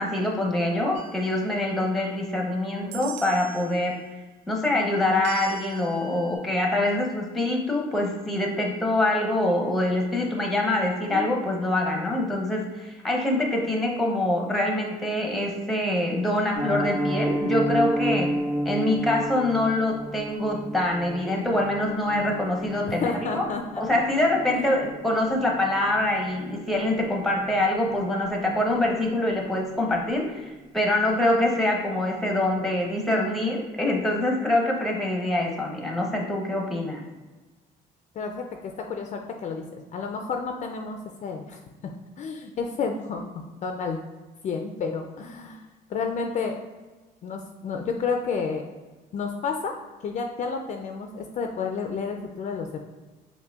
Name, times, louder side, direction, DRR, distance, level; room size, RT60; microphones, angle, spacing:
voice 1, 0.0-4.0 4.5-18.3 18.6-23.5 23.8-37.0, left 1 dB, ahead, -1 dB, 0.7 m, -25 dB
sound 1, 0.9-2.4 2.9-3.8 5.2-6.4, right 7 dB, 80° right, 0.4 m, -43 dB
voice 2, 2.4-3.1 11.1-11.3 22.8-23.8 24.5-24.7 38.2-39.6 39.9-43.3 43.6-44.0 44.4-45.6 45.9-46.6 47.2-48.6 49.1-49.7 50.0-52.8, left 5 dB, 45° left, 4 dB, 0.4 m, -31 dB
Piano, 16.5-27.4 27.7-27.9 28.2-28.4 28.8-29.0 29.3-29.4, equal, 30° right, 1.4 m, -32 dB
5.6 x 2.1 x 2.4 m, 1.2 s
cardioid pair, 110°, 17 cm